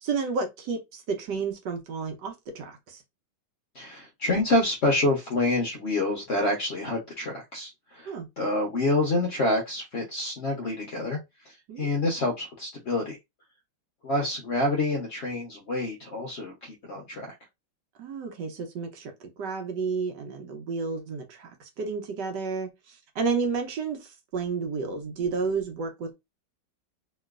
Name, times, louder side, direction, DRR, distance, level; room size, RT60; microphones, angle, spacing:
voice 1, 0.0-3.0 8.1-8.3 11.7-11.9 18.0-26.1, right 5 dB, 70° right, 1.2 m, -31 dB
voice 2, 3.7-13.2 14.0-17.3, left 2 dB, 70° left, 0.6 m, -27 dB
3.0 x 2.9 x 2.3 m
omnidirectional pair, 2.2 m